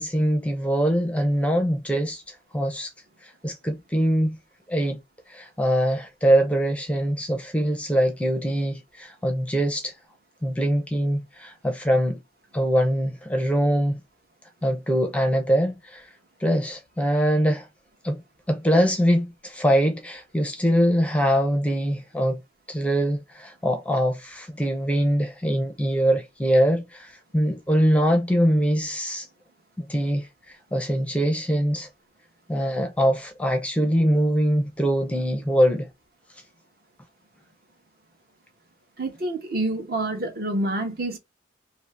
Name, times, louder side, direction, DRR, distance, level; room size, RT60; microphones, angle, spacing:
voice 1, 0.0-2.2 2.5-2.9 3.4-4.4 4.7-5.0 5.3-9.9 10.4-12.2 12.5-14.0 14.6-16.1 16.4-17.7 18.0-18.2 18.5-22.4 22.7-29.3 29.8-30.3 30.7-31.9 32.5-35.9, equal, 5° left, 0.5 m, -23 dB
voice 2, 39.0-41.2, right 2 dB, 50° right, 1.0 m, -27 dB
2.7 x 2.7 x 3.1 m
head